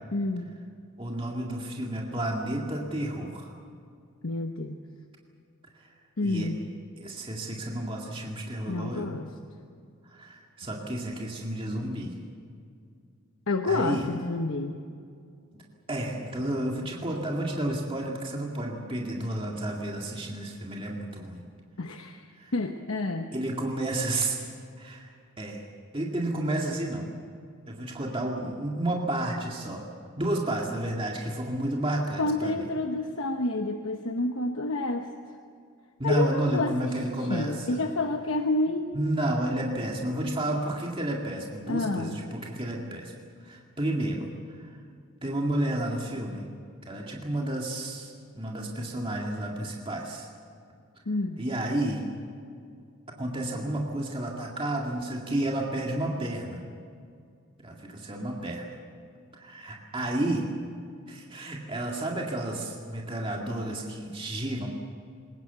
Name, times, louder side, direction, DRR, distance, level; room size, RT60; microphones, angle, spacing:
voice 1, 0.1-0.5 4.2-4.8 6.2-6.6 8.7-9.3 13.5-14.7 21.8-22.3 22.5-23.3 32.2-35.1 36.0-36.9 37.2-38.9 41.7-42.2 51.1-51.4, left 2 dB, 65° left, 5 dB, 1.1 m, -29 dB
voice 2, 1.0-3.5 6.2-6.5 7.0-9.1 10.1-12.2 13.7-14.1 15.9-21.4 22.4-22.5 23.3-24.4 24.8-25.1 25.4-25.6 25.9-27.1 27.7-29.8 30.2-32.6 36.0-37.8 38.9-43.1 43.4-44.3 44.6-44.7 45.2-46.4 46.9-50.3 51.4-52.0 53.2-56.6 57.6-58.7 59.3-60.5 61.1-64.7, right 1 dB, 25° right, -1 dB, 2.1 m, -31 dB
22.0 x 19.5 x 8.1 m, 2.3 s
head